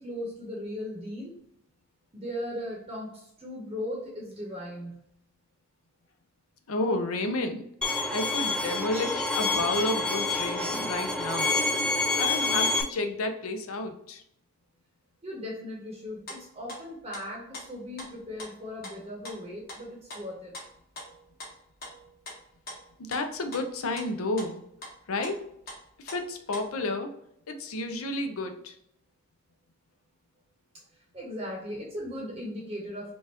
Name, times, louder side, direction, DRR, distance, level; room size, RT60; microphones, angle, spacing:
voice 1, 0.0-1.4 2.1-5.0 15.2-20.5 30.7-30.8 31.1-33.1, left 1 dB, 25° right, -2 dB, 0.8 m, -38 dB
voice 2, 6.7-7.6 8.1-11.6 12.2-14.2 23.0-24.6 25.1-25.4 26.0-27.1 27.5-28.7, left 2 dB, 85° left, 7 dB, 0.6 m, -31 dB
Bowed string instrument, 7.8-12.8, left 3 dB, 5° left, 0.3 m, -27 dB
sound 1, 16.0-16.4 16.7-17.2 17.5-18.1 18.4-19.0 19.2-24.1 24.4-24.5 24.8-24.9 25.2-26.8, left 1 dB, 45° left, 1.2 m, -43 dB
5.2 x 2.4 x 2.9 m, 0.74 s
head